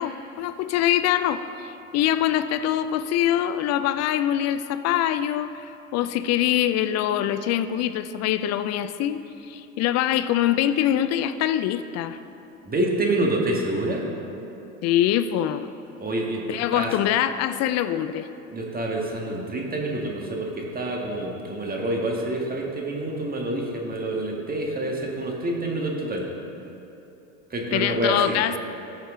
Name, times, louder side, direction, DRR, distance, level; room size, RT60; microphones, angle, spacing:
voice 1, 0.0-12.2 14.8-15.7 16.5-18.3 27.7-28.6, left 11 dB, 40° left, 13 dB, 0.4 m, -24 dB
voice 2, 12.7-14.1 16.0-16.9 18.5-26.3 27.5-28.4, right 1 dB, 20° right, 0 dB, 1.6 m, -27 dB
13.5 x 7.4 x 3.7 m, 2.9 s
hypercardioid pair, 85°, 40 cm